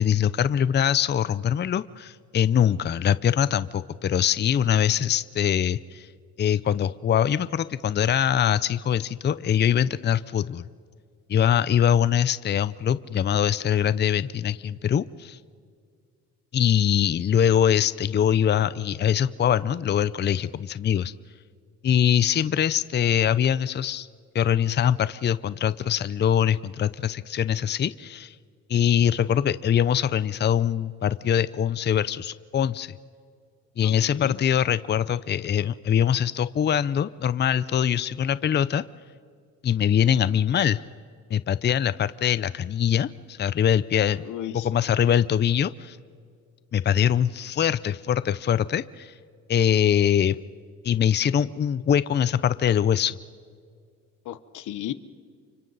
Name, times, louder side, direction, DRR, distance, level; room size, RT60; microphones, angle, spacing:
voice 1, 0.0-6.1 6.4-10.7 11.3-15.4 16.5-21.1 21.8-24.1 24.3-28.3 28.7-32.9 33.8-38.8 39.6-40.8 41.3-44.2 44.5-46.0 46.7-49.1 49.5-50.4 50.8-53.2, left 9 dB, 35° left, 16 dB, 0.5 m, -23 dB
voice 2, 33.8-34.4 44.2-44.7 54.2-54.9, left 12 dB, 80° left, 14 dB, 1.0 m, -35 dB
29.5 x 25.5 x 4.1 m, 2.1 s
cardioid pair, 90°, 30 cm